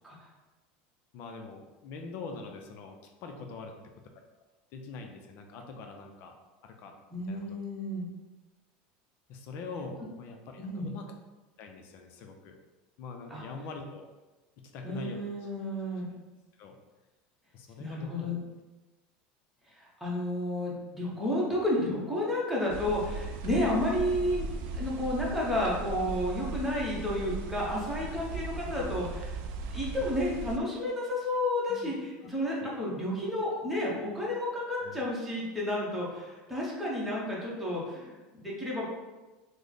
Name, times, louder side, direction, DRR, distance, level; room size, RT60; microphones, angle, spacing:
voice 1, 1.1-3.0 3.2-3.9 4.7-6.3 6.6-6.9 7.3-7.5 9.3-11.1 11.6-12.5 13.0-14.0 14.6-15.2 16.6-16.8 17.5-18.3 31.7-31.9 32.6-32.8 34.8-35.0, left 3 dB, 55° left, 4 dB, 0.5 m, -43 dB
voice 2, 7.1-8.1 10.6-10.9 13.3-13.4 14.8-16.1 17.8-18.4 19.8-24.5 24.8-29.4 29.7-38.9, left 1 dB, 5° right, -5 dB, 0.9 m, -31 dB
sound 1, 22.7-30.6, right 3 dB, 65° right, 0.4 m, -37 dB
3.1 x 2.1 x 3.9 m, 1.2 s
supercardioid pair, 130°, 4 cm